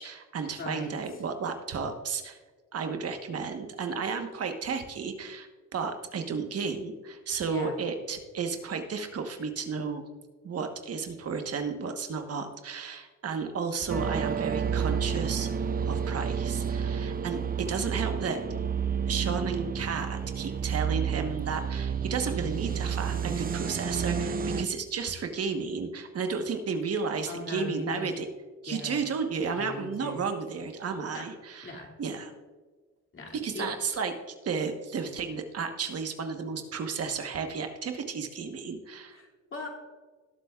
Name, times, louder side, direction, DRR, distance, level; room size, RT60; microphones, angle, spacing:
voice 1, 0.0-2.4 2.7-10.0 10.4-15.5 15.8-18.4 19.1-28.3 28.6-32.3 33.3-34.1 34.4-39.2, right 5 dB, 55° right, 6 dB, 1.3 m, -33 dB
voice 2, 0.6-0.9 7.5-7.7 27.3-28.1 28.7-29.0 29.6-30.3 31.1-31.3 31.6-31.9 33.1-33.7 39.1-39.7, left 2 dB, 40° left, 0 dB, 2.6 m, -39 dB
sound 1, 13.9-24.6, right 7 dB, 30° right, 0.6 m, -30 dB
19.0 x 7.6 x 2.4 m, 1.4 s
cardioid pair, 90°, 30 cm